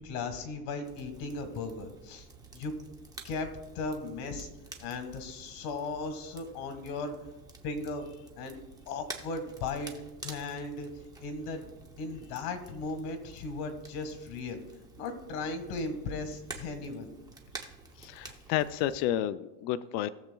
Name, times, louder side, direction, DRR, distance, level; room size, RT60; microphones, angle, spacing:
voice 1, 0.0-2.3 2.5-2.7 3.2-3.5 3.8-4.5 4.8-7.1 7.6-8.1 8.4-8.5 8.9-9.9 10.2-10.9 11.2-14.6 14.9-17.1, left 3 dB, 80° left, 7 dB, 1.8 m, -37 dB
Crackle, 0.8-19.1, right 3 dB, 10° right, 0.6 m, -50 dB
voice 2, 18.0-20.1, left 12 dB, 60° left, 11 dB, 0.5 m, -31 dB
18.5 x 7.2 x 2.3 m, 1.0 s
cardioid pair, 165°, 43 cm